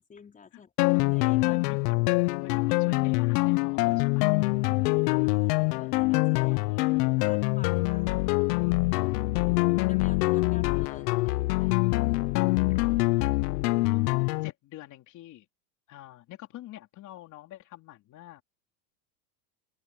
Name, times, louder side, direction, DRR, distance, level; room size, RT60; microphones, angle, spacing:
voice 1, 0.0-1.6 4.6-8.1 9.9-12.3 12.7-12.9, left 6 dB, 15° left, 4.9 m, -51 dB
sound 1, 0.8-14.5, left 24 dB, 70° left, 0.8 m, -25 dB
voice 2, 1.5-4.4 6.4-7.4 8.7-9.5 13.8-15.5 15.9-18.4, left 14 dB, 35° left, 3.3 m, -47 dB
cardioid pair, 165°, 49 cm